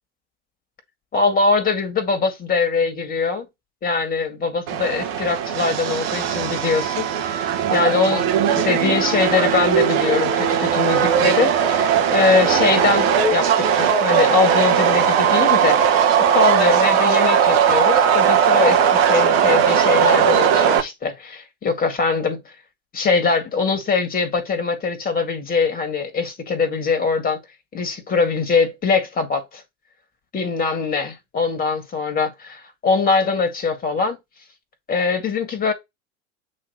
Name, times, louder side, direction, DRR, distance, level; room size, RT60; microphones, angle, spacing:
voice 1, 1.1-3.5 3.8-15.8 16.3-22.4 22.9-27.4 27.7-29.6 30.3-34.2 34.9-35.7, left 4 dB, 25° left, 1.9 m, -22 dB
Subway metro underground, 4.7-20.8, right 8 dB, 50° right, 1.2 m, -18 dB
8.5 x 3.1 x 4.1 m
figure-of-eight pair, 80°, 38 cm